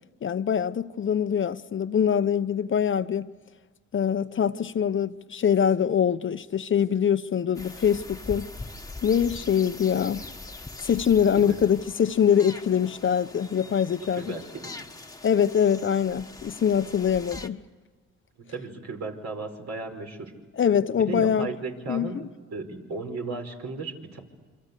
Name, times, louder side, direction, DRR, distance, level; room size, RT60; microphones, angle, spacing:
voice 1, 0.2-3.3 3.9-8.5 9.0-10.2 10.8-14.3 15.2-17.6 20.6-21.5 21.9-22.3, left 8 dB, 40° left, 0.8 m, -24 dB
sound 1, 7.5-17.5, left 2 dB, 10° left, 1.4 m, -42 dB
voice 2, 14.1-14.7 18.4-20.3 21.0-22.2 22.5-24.2, right 3 dB, 60° right, 5.2 m, -35 dB
27.5 x 25.5 x 8.3 m
cardioid pair, 90°, 30 cm